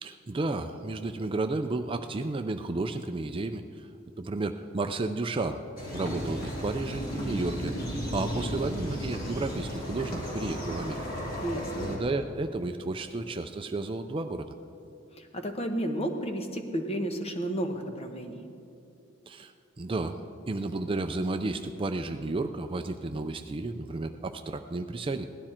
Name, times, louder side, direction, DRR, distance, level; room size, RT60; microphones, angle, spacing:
voice 1, 0.0-3.9 4.2-5.6 5.9-7.7 8.1-11.0 11.8-14.5 19.3-19.5 19.8-20.2 20.5-25.3, right 2 dB, 25° right, 8 dB, 0.4 m, -32 dB
sound 1, 5.8-12.0, equal, 45° left, 3.0 m, -34 dB
voice 2, 11.4-11.9 15.2-18.4, right 1 dB, 30° left, 5 dB, 1.0 m, -32 dB
17.0 x 12.0 x 4.4 m, 2.6 s
head